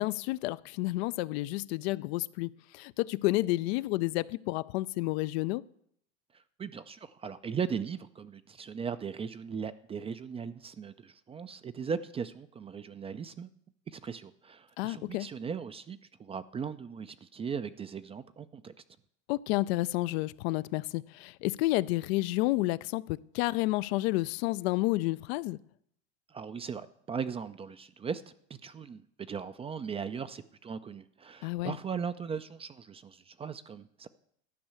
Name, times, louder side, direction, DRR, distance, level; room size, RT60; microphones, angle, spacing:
voice 1, 0.0-5.6 14.8-15.3 19.3-25.6 31.4-31.8, left 19 dB, 60° left, 0.5 m, -30 dB
voice 2, 6.3-13.5 13.9-18.7 26.3-28.2 28.5-34.1, right 6 dB, 15° right, 0.4 m, -38 dB
12.0 x 5.4 x 8.8 m
hypercardioid pair, 105°, 36 cm